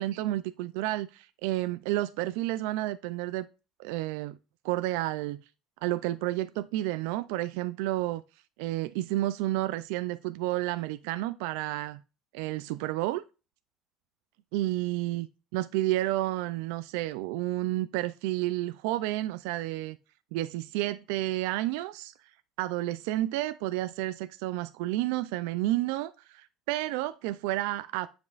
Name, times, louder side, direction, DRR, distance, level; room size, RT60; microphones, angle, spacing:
voice 1, 0.0-3.5 3.8-4.4 4.6-5.4 5.8-8.2 8.6-12.0 12.3-13.2 14.5-15.3 15.5-20.0 20.3-22.1 22.6-28.1, right 16 dB, 80° right, 0.4 m, -31 dB
9.5 x 5.2 x 2.4 m
cardioid pair, 175°, 0 cm